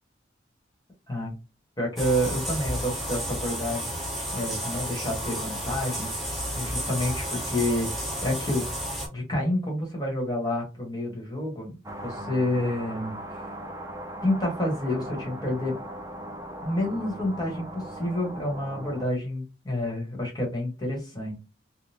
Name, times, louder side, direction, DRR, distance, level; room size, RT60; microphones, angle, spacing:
voice 1, 1.8-4.1 4.3-6.2 6.5-8.7 9.1-11.8 12.0-13.2 14.2-15.8 16.6-21.4, left 1 dB, 20° left, -1 dB, 1.3 m, -29 dB
sound 1, 2.0-9.1, equal, ahead, 0.9 m, -32 dB
sound 2, 11.8-19.0, right 1 dB, 15° right, 0.4 m, -39 dB
3.7 x 2.1 x 2.8 m, 0.30 s
head